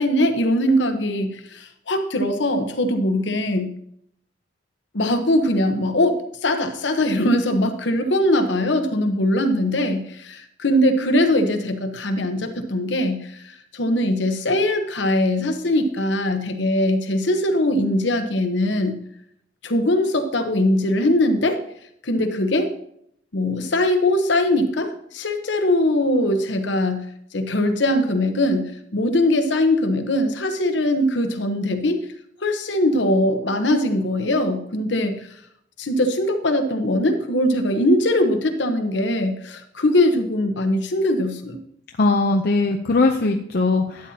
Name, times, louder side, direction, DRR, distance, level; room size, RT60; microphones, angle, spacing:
voice 1, 0.0-3.7 4.9-19.0 19.6-21.6 22.0-22.7 23.3-27.1 27.3-32.0 32.4-35.2 35.8-41.6, left 1 dB, 75° left, 7 dB, 1.0 m, -21 dB
voice 2, 42.0-44.1, left 3 dB, 55° left, 2 dB, 0.6 m, -20 dB
12.0 x 9.0 x 2.8 m, 0.71 s
head